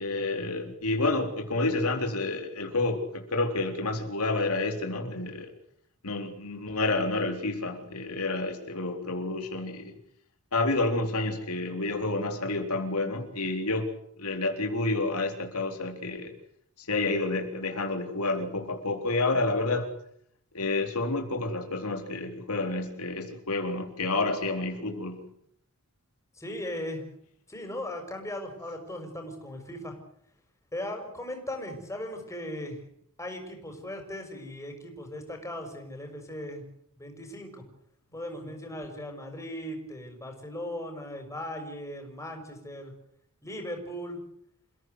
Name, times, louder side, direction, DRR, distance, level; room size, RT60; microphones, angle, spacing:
voice 1, 0.0-5.5 6.0-9.9 10.5-13.9 14.2-16.3 16.8-19.9 20.5-25.2, left 2 dB, 75° left, 4 dB, 3.9 m, -29 dB
voice 2, 26.3-27.0 27.5-30.0 30.7-32.8 33.2-36.6 37.0-37.7 38.1-42.9 43.4-44.2, left 1 dB, 15° left, 4 dB, 6.1 m, -38 dB
28.0 x 16.5 x 8.0 m, 0.70 s
head